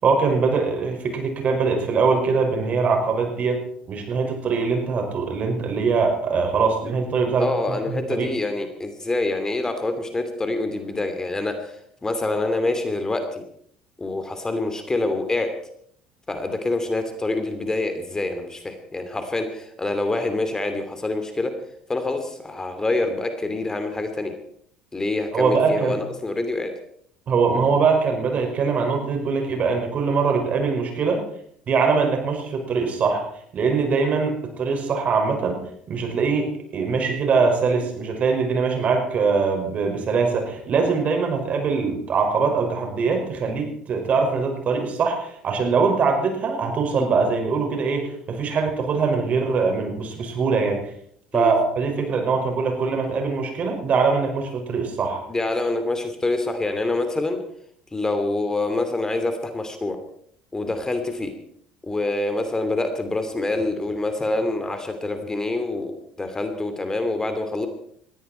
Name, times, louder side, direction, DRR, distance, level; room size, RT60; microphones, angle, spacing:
voice 1, 0.0-3.6 3.9-7.8 8.1-8.3 25.3-26.0 27.3-31.2 31.7-33.2 33.5-35.6 35.9-50.9 51.3-55.2, right 4 dB, 45° right, 3 dB, 5.6 m, -22 dB
voice 2, 7.4-11.8 12.0-13.4 14.0-15.5 16.3-21.5 21.9-24.3 24.9-26.7 51.3-51.5 55.3-57.4 57.9-60.0 60.5-61.3 61.8-67.7, left 2 dB, 20° left, 7 dB, 2.7 m, -26 dB
20.5 x 15.5 x 4.5 m, 0.66 s
hypercardioid pair, 70°, 3 cm